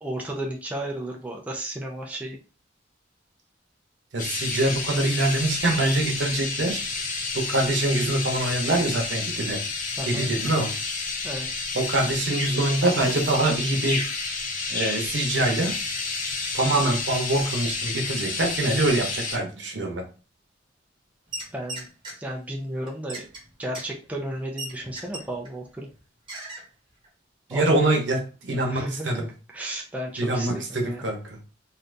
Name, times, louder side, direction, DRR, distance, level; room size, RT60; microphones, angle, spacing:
voice 1, 0.0-2.4 10.0-10.3 11.2-11.7 21.5-21.9 22.2-23.3 23.6-25.9 27.5-28.0 28.7-29.2 29.5-31.1, right 1 dB, 10° right, -1 dB, 0.5 m, -33 dB
voice 2, 4.1-6.8 7.3-9.6 10.1-10.7 11.7-14.0 14.7-15.8 16.5-20.0 27.5-29.3 30.2-31.4, right 2 dB, 75° right, 1 dB, 0.9 m, -24 dB
sound 1, 4.2-19.4, left 4 dB, 45° left, 0.7 m, -30 dB
sound 2, 21.3-22.2 22.9-25.5 25.8-26.0 26.3-26.6 27.0-27.1, right 2 dB, 25° right, 1.1 m, -37 dB
2.6 x 2.6 x 3.3 m, 0.34 s
head